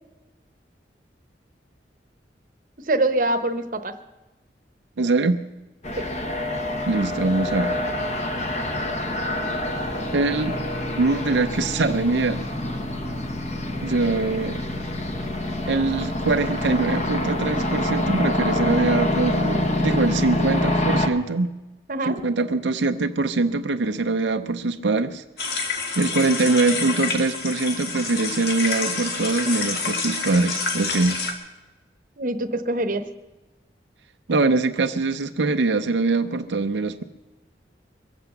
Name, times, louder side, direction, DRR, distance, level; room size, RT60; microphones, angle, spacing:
voice 1, 2.8-4.0 6.0-6.1 21.9-22.2 32.2-33.1, right 2 dB, 50° right, 8 dB, 0.9 m, -24 dB
voice 2, 5.0-5.4 6.9-7.8 10.1-10.6 11.0-12.4 13.8-14.6 15.7-21.5 22.1-25.2 25.5-31.2 34.3-37.0, right 3 dB, 90° right, 7 dB, 0.6 m, -23 dB
sound 1, 5.8-21.1, left 1 dB, 40° left, 1.1 m, -26 dB
sound 2, 25.4-31.3, left 4 dB, 60° left, 1.8 m, -28 dB
22.5 x 8.0 x 6.9 m, 1.1 s
head